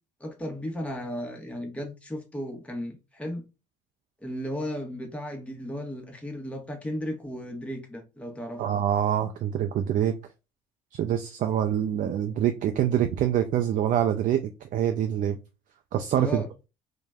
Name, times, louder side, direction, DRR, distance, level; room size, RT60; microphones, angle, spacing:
voice 1, 0.2-3.4 4.2-8.6 16.1-16.5, equal, 5° left, 0.9 m, -35 dB
voice 2, 8.6-10.1 10.9-15.4 15.9-16.4, right 10 dB, 45° right, 0.4 m, -25 dB
3.1 x 2.1 x 2.3 m
hypercardioid pair, 60°, 19 cm